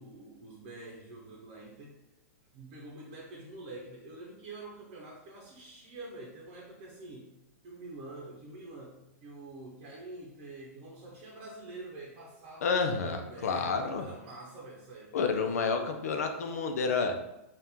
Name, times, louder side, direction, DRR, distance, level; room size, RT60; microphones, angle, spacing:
voice 1, 0.0-2.0 2.5-15.2, right 2 dB, 35° right, -3 dB, 0.8 m, -46 dB
voice 2, 12.6-14.1 15.1-17.1, left 5 dB, 90° left, 5 dB, 0.6 m, -29 dB
4.3 x 2.5 x 3.6 m, 0.90 s
supercardioid pair, 165°, 8 cm